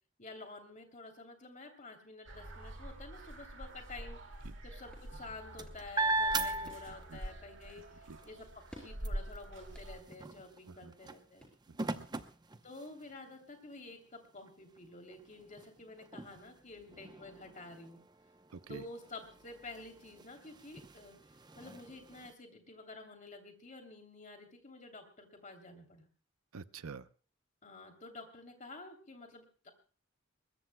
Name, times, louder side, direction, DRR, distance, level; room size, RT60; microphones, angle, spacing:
voice 1, 0.2-4.2 4.6-11.5 12.6-18.0 18.7-26.1 27.6-29.7, left 2 dB, 35° left, 4 dB, 3.0 m, -50 dB
sound 1, 2.3-10.0, right 1 dB, 60° right, 2.3 m, -46 dB
sound 2, 4.5-12.0, left 1 dB, 5° left, 5.4 m, -60 dB
sound 3, 5.0-7.4 7.8-13.3 13.9-14.0 14.3-22.3, right 2 dB, 20° right, 0.7 m, -40 dB
voice 2, 6.4-7.2 8.1-8.2 10.7-10.9 11.7-12.2 18.5-18.8 26.5-27.1, right 4 dB, 90° right, 14 dB, 0.7 m, -49 dB
22.0 x 21.0 x 2.2 m, 0.38 s
head